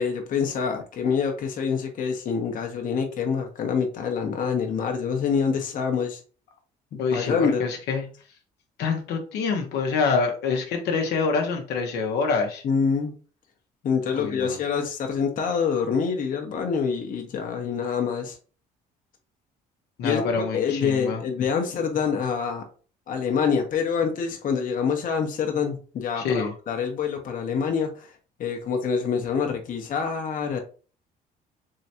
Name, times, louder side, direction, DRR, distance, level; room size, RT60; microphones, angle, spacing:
voice 1, 0.0-6.2 6.9-7.6 12.6-13.1 13.8-18.4 20.0-22.6 23.1-28.1 28.4-30.6, left 6 dB, 55° left, 3 dB, 0.9 m, -26 dB
voice 2, 7.0-8.0 8.8-12.6 14.1-14.6 20.0-21.2 26.2-26.5, left 5 dB, 80° left, 3 dB, 1.0 m, -26 dB
3.7 x 3.3 x 2.8 m, 0.37 s
cardioid pair, 110°, 17 cm